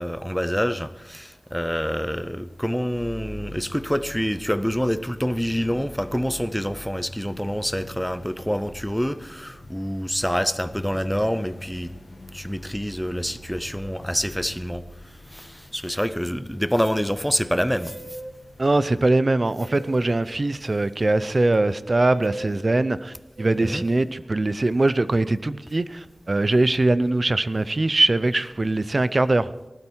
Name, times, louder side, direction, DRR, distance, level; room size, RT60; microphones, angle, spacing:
voice 1, 0.0-11.9 12.3-14.8 15.3-17.9 23.7-23.8, equal, 5° left, 0.7 m, -26 dB
sound 1, 2.9-19.1, left 1 dB, 65° left, 2.1 m, -44 dB
sound 2, 17.4-18.4 19.6-20.2 21.9-22.5 23.4-24.0, right 2 dB, 85° right, 1.4 m, -40 dB
voice 2, 18.6-29.5, right 2 dB, 50° right, 0.6 m, -22 dB
19.5 x 12.0 x 4.5 m
wide cardioid pair, 55°, 0 cm